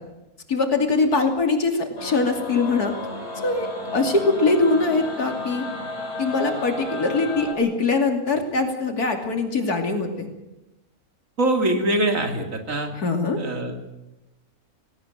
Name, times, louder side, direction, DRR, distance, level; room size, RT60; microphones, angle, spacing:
voice 1, 0.5-2.9 3.4-5.6 6.2-10.3 13.0-13.4, left 3 dB, 90° left, 4 dB, 3.3 m, -22 dB
sound 1, 2.0-7.5, left 2 dB, 45° left, 4.3 m, -33 dB
voice 2, 11.4-12.9 13.4-13.8, right 1 dB, 60° right, 5 dB, 3.0 m, -23 dB
18.0 x 18.0 x 9.2 m, 0.97 s
omnidirectional pair, 1.6 m